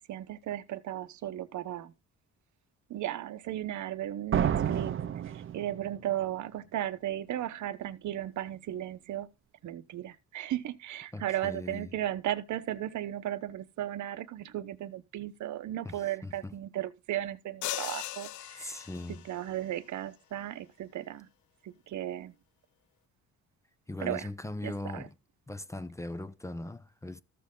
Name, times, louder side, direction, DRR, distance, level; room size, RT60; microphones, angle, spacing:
voice 1, 0.1-1.9 2.9-9.3 9.6-18.8 19.2-21.3 21.6-22.3 24.0-24.3 24.6-25.1, right 12 dB, 70° right, 1.0 m, -36 dB
sound 1, 4.3-6.1, right 9 dB, 45° right, 0.7 m, -30 dB
voice 2, 11.1-11.9 15.8-16.6 18.6-19.2 23.9-25.1 25.5-27.2, left 2 dB, 10° left, 0.6 m, -40 dB
sound 2, 17.6-19.4, left 14 dB, 75° left, 0.6 m, -38 dB
13.5 x 6.8 x 3.8 m
cardioid pair, 90°, 30 cm